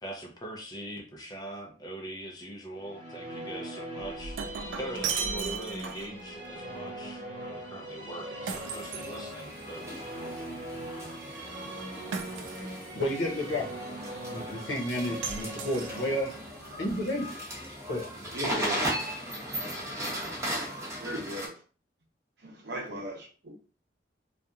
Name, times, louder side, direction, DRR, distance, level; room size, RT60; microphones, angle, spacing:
voice 1, 0.0-4.4 4.7-9.8, right 1 dB, 20° left, 0.5 m, -41 dB
Musical instrument, 2.7-18.1, right 1 dB, 45° right, 1.1 m, -41 dB
Shatter, 4.0-6.2 8.5-9.7 12.1-12.9 15.2-16.3, right 6 dB, 85° right, 0.4 m, -36 dB
sound 1, 8.6-21.5, equal, 15° right, 0.8 m, -37 dB
voice 2, 12.9-13.7 14.3-16.3 16.8-17.3 17.9-18.8, left 1 dB, 75° left, 0.9 m, -31 dB
voice 3, 18.3-18.8 19.9-20.3 21.0-21.6 22.4-23.5, right 1 dB, 65° right, 0.8 m, -38 dB
2.7 x 2.4 x 2.3 m
head